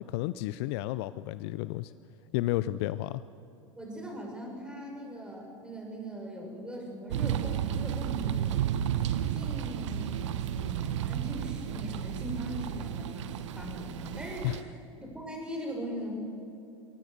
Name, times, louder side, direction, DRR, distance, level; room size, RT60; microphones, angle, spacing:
voice 1, 0.0-1.9 2.3-3.2 14.4-14.6, left 16 dB, 50° left, 16 dB, 0.5 m, -32 dB
voice 2, 3.8-8.6 9.1-14.7 15.0-16.1, right 1 dB, 5° right, 0 dB, 6.2 m, -40 dB
sound 1, 7.1-14.6, right 10 dB, 65° right, 1.2 m, -32 dB
23.0 x 18.5 x 6.7 m, 2.7 s
figure-of-eight pair, 90°, 17 cm